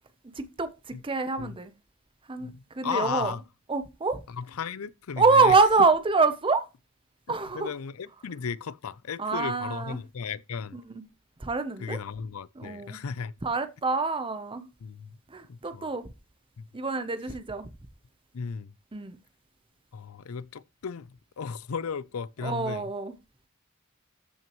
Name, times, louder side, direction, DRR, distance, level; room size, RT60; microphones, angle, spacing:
voice 1, 0.4-1.7 2.3-2.5 2.7-3.3 3.7-4.2 5.2-6.6 7.3-7.7 9.2-10.0 10.7-11.0 11.4-12.0 12.6-13.0 13.4-14.7 15.3-16.1 16.7-17.7 18.9-19.2 22.4-23.1, right 4 dB, 25° right, 0.7 m, -26 dB
voice 2, 2.4-3.4 4.3-5.6 7.3-10.8 11.8-13.3 14.8-15.2 15.5-15.9 16.6-16.7 18.3-18.7 19.9-22.8, left 6 dB, 85° left, 0.5 m, -35 dB
14.0 x 6.1 x 3.0 m
head